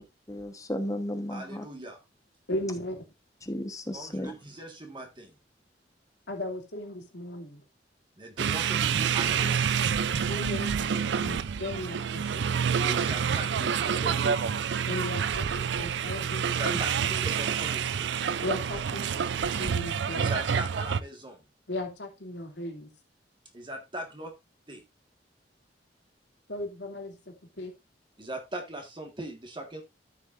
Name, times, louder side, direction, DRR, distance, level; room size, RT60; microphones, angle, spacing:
voice 1, 0.3-1.6 3.4-4.3, left 1 dB, 20° left, 1.2 m, -34 dB
voice 2, 1.3-2.0 3.9-5.3 8.2-9.9 12.8-14.6 16.5-18.1 20.1-21.4 23.5-24.3 24.7-24.8 28.2-29.8, right 1 dB, 30° right, 1.7 m, -39 dB
voice 3, 2.5-3.0 6.3-7.6 10.3-12.5 14.9-16.8 18.4-19.1 19.4-20.3 21.7-22.9 26.5-27.7, left 1 dB, 80° left, 2.6 m, -36 dB
sound 1, 8.4-21.0, right 7 dB, 90° right, 0.5 m, -28 dB
13.5 x 6.5 x 2.6 m
head